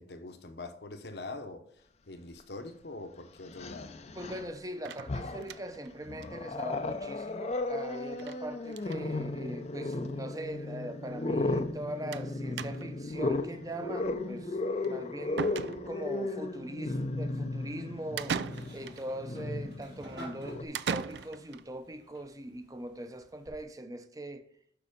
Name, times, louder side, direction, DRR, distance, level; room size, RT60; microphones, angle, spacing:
voice 1, 0.0-3.9, left 2 dB, 65° left, 1.0 m, -44 dB
Growling, 2.4-2.5 3.5-4.5 4.9-5.6 6.1-20.6, left 2 dB, 35° left, 0.5 m, -35 dB
voice 2, 4.1-14.6 14.8-15.5 15.9-18.4 18.7-24.5, right 1 dB, 20° right, 0.7 m, -41 dB
sound 1, 4.9-5.9 6.2-6.3 6.6-6.7 6.9-7.0 8.2-8.4 8.7-9.0 9.9-10.0 10.3-10.4 12.1-12.3 12.6-13.1 14.8-14.9 15.4-16.2 18.2-19.0 20.7-21.6, right 6 dB, 70° right, 0.4 m, -37 dB
sound 2, 18.5-23.5, right 1 dB, 85° right, 3.7 m, -53 dB
6.9 x 6.1 x 5.2 m
head